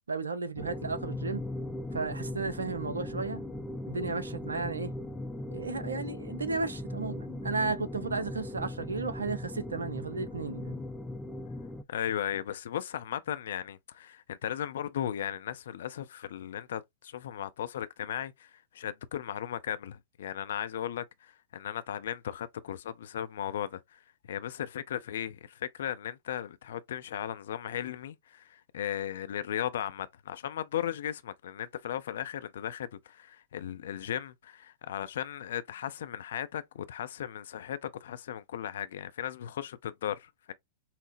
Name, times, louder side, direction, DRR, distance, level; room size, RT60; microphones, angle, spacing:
voice 1, 0.1-1.4 1.9-3.4 3.9-4.9 5.5-10.8, right 4 dB, 80° right, 0.5 m, -34 dB
sound 1, 0.6-11.8, left 1 dB, 10° left, 0.4 m, -38 dB
voice 2, 11.9-24.0 24.3-40.5, left 10 dB, 65° left, 0.5 m, -36 dB
5.7 x 2.0 x 2.6 m
figure-of-eight pair, 100°, 0 cm